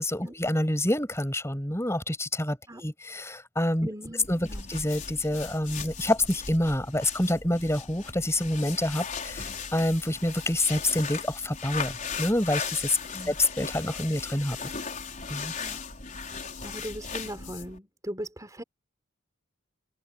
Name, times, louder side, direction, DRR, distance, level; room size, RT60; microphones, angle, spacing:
voice 1, 0.0-3.9 4.3-13.0 13.3-14.6 15.3-15.5, left 1 dB, 10° left, 6.1 m, -27 dB
voice 2, 3.8-4.7 13.1-13.3 15.6-15.8 16.6-18.6, right 1 dB, 15° right, 4.1 m, -39 dB
sound 1, 4.2-17.8, left 6 dB, 35° left, 5.0 m, -37 dB
open air
head